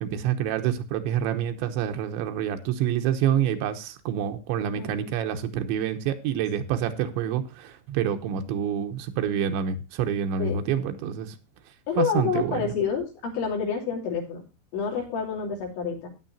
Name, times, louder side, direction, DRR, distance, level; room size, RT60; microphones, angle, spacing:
voice 1, 0.0-11.4 12.0-12.7, right 9 dB, 85° right, 3.3 m, -27 dB
voice 2, 11.9-14.4 14.7-16.1, left 6 dB, 80° left, 5.2 m, -28 dB
15.0 x 9.5 x 2.7 m
omnidirectional pair, 5.1 m